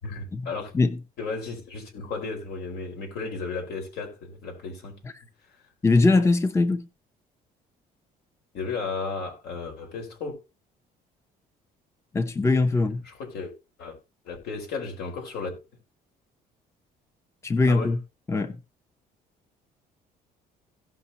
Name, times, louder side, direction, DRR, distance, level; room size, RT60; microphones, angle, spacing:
voice 1, 0.0-0.7 1.2-5.0 8.5-10.3 12.8-13.5 13.8-14.0 14.2-15.5 17.6-17.9, left 4 dB, 75° left, 4.8 m, -34 dB
voice 2, 5.8-6.9 12.1-13.0 17.4-18.0 18.3-18.6, left 3 dB, 15° left, 0.7 m, -21 dB
17.0 x 5.8 x 2.9 m
cardioid pair, 110°, 17 cm